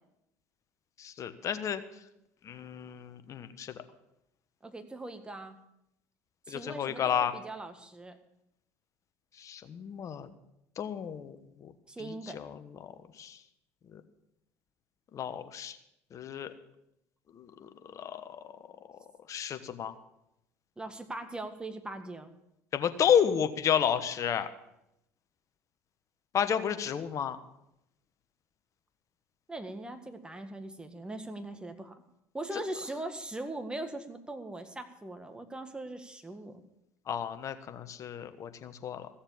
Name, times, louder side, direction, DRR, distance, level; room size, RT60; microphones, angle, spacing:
voice 1, 1.0-1.8 2.4-3.7 6.5-7.3 9.4-10.3 10.8-11.4 11.6-11.7 12.3-12.5 12.8-12.9 13.2-13.4 13.9-14.0 15.1-15.8 16.1-16.5 17.4-17.7 17.9-18.3 19.3-19.9 22.7-24.5 26.3-27.4 37.1-39.1, left 8 dB, 45° left, 10 dB, 1.2 m, -31 dB
voice 2, 4.6-5.6 6.5-8.2 11.9-12.4 20.8-22.3 29.5-32.0 32.3-36.6, right 2 dB, 10° right, 7 dB, 1.7 m, -40 dB
15.5 x 7.2 x 7.1 m, 0.84 s
hypercardioid pair, 70°, 8 cm